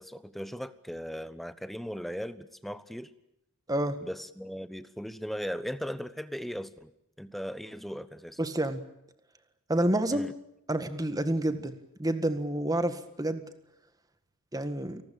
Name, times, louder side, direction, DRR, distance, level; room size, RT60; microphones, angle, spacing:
voice 1, 0.0-3.1 4.0-6.9 7.2-8.4 10.1-10.3, equal, ahead, 13 dB, 1.0 m, -38 dB
voice 2, 3.7-4.0 8.4-8.8 9.7-10.3 10.7-13.4 14.5-15.0, right 1 dB, 15° right, 10 dB, 1.7 m, -29 dB
28.5 x 19.5 x 8.7 m, 0.80 s
head